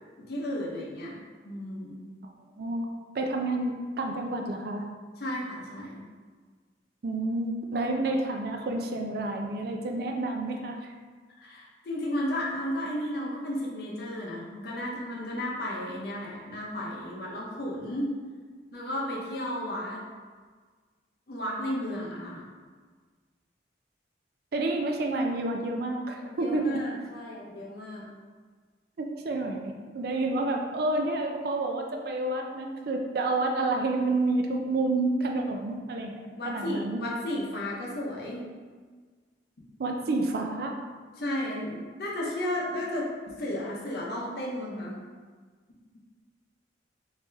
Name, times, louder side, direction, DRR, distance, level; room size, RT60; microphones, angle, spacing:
voice 1, 0.3-2.1 5.2-6.0 11.4-18.1 18.7-20.0 21.3-22.4 26.2-28.1 36.3-38.4 41.2-43.1 43.4-44.9, left 1 dB, 55° left, -4 dB, 0.7 m, -33 dB
voice 2, 3.1-4.9 7.0-10.9 24.5-26.8 29.0-37.0 39.8-40.7, right 2 dB, 55° right, 2 dB, 0.4 m, -29 dB
3.3 x 2.7 x 3.3 m, 1.5 s
head